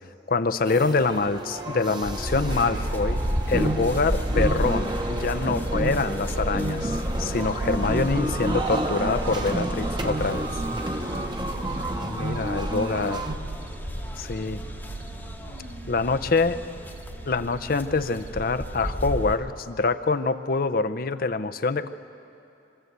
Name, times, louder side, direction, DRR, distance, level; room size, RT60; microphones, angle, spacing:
voice 1, 0.3-3.2 3.5-10.5 12.0-13.3 14.2-14.6 15.9-16.6 17.2-21.9, left 3 dB, 55° left, 10 dB, 0.6 m, -25 dB
sound 1, 0.6-13.4, right 1 dB, 25° right, 1.1 m, -30 dB
sound 2, 2.0-19.4, equal, 10° left, 1.0 m, -32 dB
sound 3, 2.3-19.3, right 4 dB, 90° right, 0.5 m, -39 dB
voice 2, 10.8-12.5 15.4-16.0 16.5-16.7, left 1 dB, 65° right, 5 dB, 1.3 m, -45 dB
24.5 x 13.5 x 8.0 m, 2.6 s
head